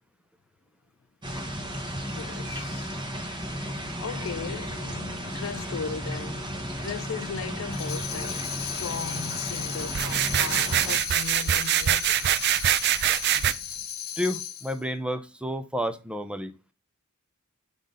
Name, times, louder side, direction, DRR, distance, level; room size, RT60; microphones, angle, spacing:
sound 1, 1.2-11.0, equal, 20° right, 1.3 m, -34 dB
voice 1, 2.1-2.9 4.0-12.5, left 6 dB, 60° left, 0.4 m, -38 dB
Tambourine, 7.7-14.8, left 9 dB, 45° left, 0.9 m, -36 dB
sound 2, 9.9-13.5, right 11 dB, 50° right, 0.4 m, -24 dB
voice 2, 14.2-16.5, equal, 5° right, 0.6 m, -30 dB
5.9 x 3.9 x 5.1 m
head